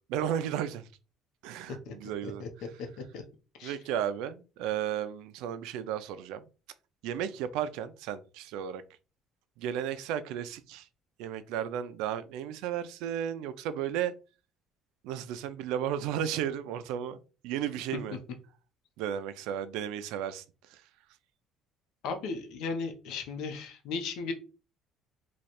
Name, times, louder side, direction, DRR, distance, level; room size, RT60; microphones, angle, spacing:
voice 1, 0.1-0.8 1.4-2.4 3.6-6.4 7.0-8.8 9.6-10.9 11.2-14.1 15.0-17.2 17.4-18.2 19.0-20.4 20.7-20.8, right 9 dB, 90° right, 0.4 m, -34 dB
voice 2, 22.0-24.3, left 4 dB, 70° left, 0.9 m, -36 dB
3.1 x 2.4 x 4.2 m
cardioid pair, 160°, 0 cm